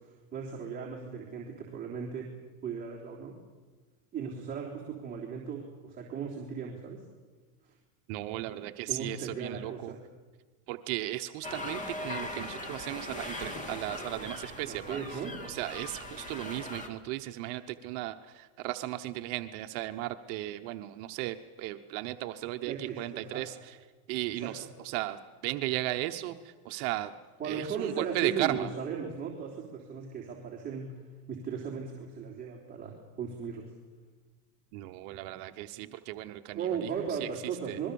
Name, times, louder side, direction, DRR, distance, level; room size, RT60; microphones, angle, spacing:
voice 1, 0.0-2.3 2.6-3.3 4.1-7.0 7.6-7.8 8.9-10.0 14.1-14.3 14.7-15.4 22.7-23.5 24.3-24.7 27.4-31.0 31.3-33.7 36.5-37.9, right 6 dB, 20° right, -3 dB, 3.3 m, -37 dB
voice 2, 8.1-9.9 10.7-23.8 24.1-27.1 27.4-28.7 34.7-37.3 37.7-37.8, right 16 dB, 55° right, 7 dB, 1.0 m, -36 dB
sound 1, 11.4-16.9, left 1 dB, 15° left, 2.1 m, -40 dB
28.0 x 21.5 x 7.0 m, 1.4 s
supercardioid pair, 160°, 44 cm